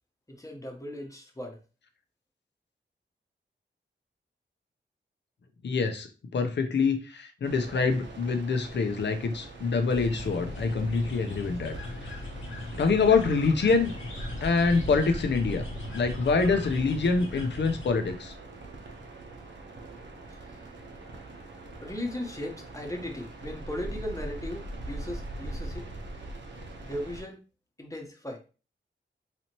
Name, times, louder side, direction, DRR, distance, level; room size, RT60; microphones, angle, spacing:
voice 1, 0.3-1.6 20.3-20.7 21.8-26.0 26.8-27.4 27.8-28.4, left 1 dB, 15° left, 2 dB, 1.0 m, -37 dB
voice 2, 5.6-6.1 6.3-11.7 12.0-12.1 12.7-13.9 14.4-15.6 15.9-18.3, left 4 dB, 65° left, 6 dB, 0.6 m, -25 dB
sound 1, 7.4-27.2, right 2 dB, 70° right, 0.9 m, -42 dB
sound 2, 9.9-17.9, left 2 dB, 85° left, 1.0 m, -39 dB
4.2 x 2.8 x 2.9 m, 0.34 s
wide cardioid pair, 80°, 20 cm